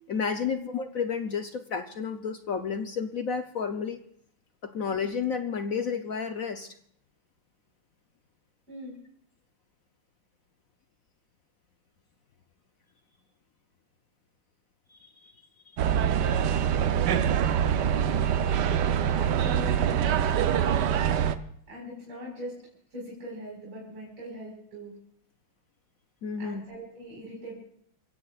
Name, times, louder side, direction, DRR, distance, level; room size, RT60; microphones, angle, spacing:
voice 1, 0.1-4.0 4.6-6.7 14.9-15.3 15.9-16.0 26.2-26.6, left 6 dB, 65° left, 7 dB, 0.8 m, -31 dB
sound 1, 15.8-21.4, right 8 dB, 65° right, 1.2 m, -24 dB
voice 2, 17.9-18.3 19.1-20.4 21.7-22.6 22.9-24.9 26.4-27.5, equal, 85° right, -4 dB, 5.7 m, -41 dB
27.5 x 16.5 x 2.4 m, 0.68 s
omnidirectional pair, 2.3 m